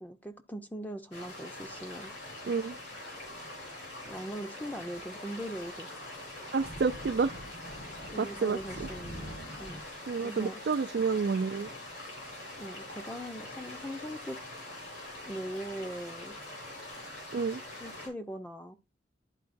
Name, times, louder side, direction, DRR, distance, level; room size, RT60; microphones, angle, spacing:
voice 1, 0.0-2.1 4.0-5.9 6.5-6.6 8.1-9.8 10.2-10.6 12.5-14.4 15.3-16.4 17.8-18.8, equal, 10° left, 0.6 m, -41 dB
sound 1, 1.1-18.1, left 1 dB, 75° left, 4.5 m, -44 dB
Thunder, 1.8-2.2 2.5-2.6 3.6-9.8, equal, 60° left, 2.4 m, -47 dB
voice 2, 2.4-2.8 6.5-7.3 8.2-8.9 10.1-11.7 17.3-17.6, right 5 dB, 65° right, 0.4 m, -29 dB
11.5 x 4.7 x 2.5 m
head